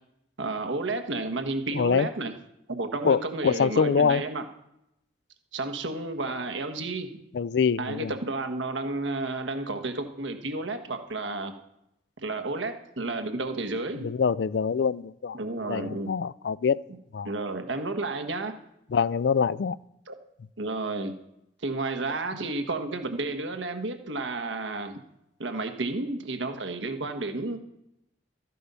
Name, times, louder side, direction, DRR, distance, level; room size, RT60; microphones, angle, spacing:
voice 1, 0.4-2.3 2.7-4.4 5.5-7.1 7.8-11.5 12.2-14.0 15.3-16.2 16.9-17.0 17.2-18.5 20.1-20.2 20.6-21.1 21.6-25.0 25.4-27.6, right 2 dB, 85° right, 7 dB, 1.3 m, -31 dB
voice 2, 1.7-2.1 3.0-4.2 7.3-8.1 14.0-15.4 15.7-16.8 17.1-17.3 18.9-19.8, left 6 dB, 65° left, 18 dB, 0.4 m, -24 dB
13.5 x 10.0 x 5.5 m, 0.82 s
head